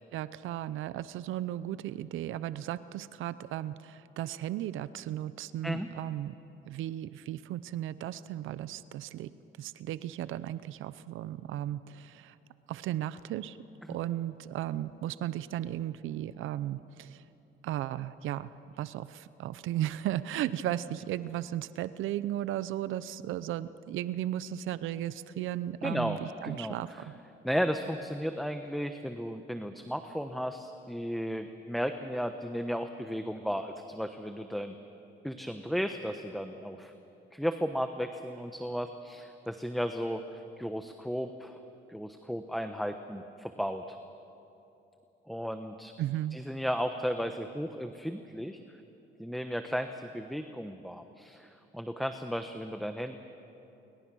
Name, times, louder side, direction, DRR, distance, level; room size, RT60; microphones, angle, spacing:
voice 1, 0.0-6.4 6.7-9.3 9.6-12.4 12.7-13.6 13.9-17.2 17.6-18.5 18.8-26.9 46.0-46.4, right 12 dB, 85° right, 15 dB, 0.7 m, -35 dB
voice 2, 25.8-27.0 27.4-34.7 35.2-36.9 37.3-41.6 41.9-44.0 45.3-45.9 46.3-48.6 49.2-53.2, equal, ahead, 7 dB, 1.0 m, -34 dB
28.5 x 24.0 x 6.3 m, 3.0 s
cardioid pair, 90°, 20 cm